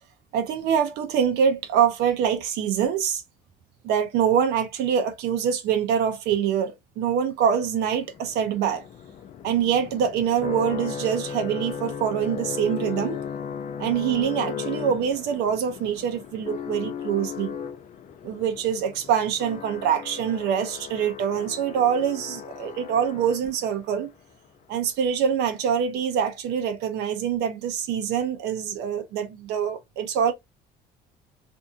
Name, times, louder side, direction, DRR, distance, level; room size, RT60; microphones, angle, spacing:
voice 1, 0.3-3.2 3.8-8.8 9.4-13.2 13.8-17.5 18.2-24.1 24.7-30.3, right 8 dB, 85° right, 0.6 m, -25 dB
sound 1, 7.6-23.8, left 7 dB, 50° left, 0.4 m, -36 dB
2.6 x 2.6 x 2.3 m
cardioid pair, 110°, 17 cm